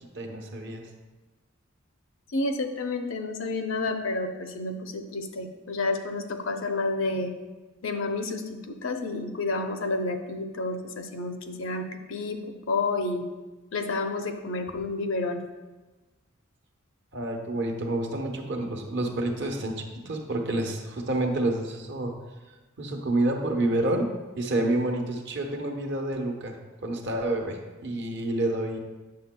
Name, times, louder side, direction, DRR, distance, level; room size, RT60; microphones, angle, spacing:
voice 1, 0.1-0.8 17.1-22.1 22.8-24.1 24.4-26.6 26.8-28.8, right 1 dB, 60° right, 2 dB, 0.9 m, -28 dB
voice 2, 2.3-7.3 7.8-13.3 13.7-15.4, left 3 dB, 70° left, 6 dB, 0.6 m, -30 dB
8.5 x 6.6 x 2.2 m, 1.2 s
head